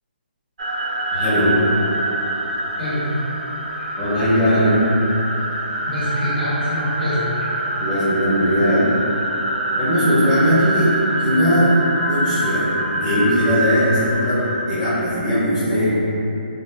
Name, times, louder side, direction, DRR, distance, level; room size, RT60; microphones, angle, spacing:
sound 1, 0.6-14.6, right 1 dB, 55° right, 0.4 m, -25 dB
voice 1, 1.1-1.6 4.0-4.8 7.8-8.9 9.8-10.9 11.2-11.8 12.1-15.9, equal, 20° left, -15 dB, 0.7 m, -19 dB
voice 2, 2.8-3.1 3.9-4.0 5.9-7.5, equal, 60° left, -10 dB, 1.2 m, -25 dB
2.4 x 2.2 x 3.2 m, 2.9 s
hypercardioid pair, 170°, 6 cm